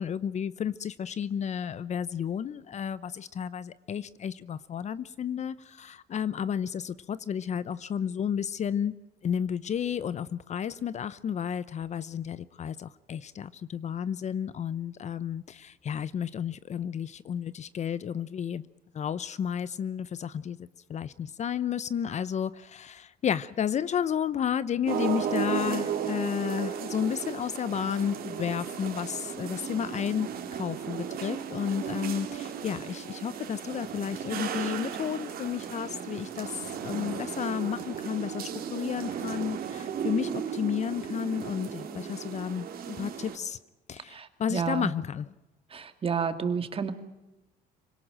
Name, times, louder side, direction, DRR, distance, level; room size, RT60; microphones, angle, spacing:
voice 1, 0.0-9.0 9.2-18.6 18.9-20.6 20.9-43.6 43.9-45.3, left 8 dB, 45° left, 18 dB, 0.8 m, -32 dB
sound 1, 24.8-43.4, right 8 dB, 60° right, 3.1 m, -35 dB
voice 2, 44.1-44.9 45.7-46.9, right 6 dB, 35° right, 9 dB, 2.3 m, -30 dB
26.0 x 18.0 x 8.9 m, 1.0 s
cardioid pair, 110°, 17 cm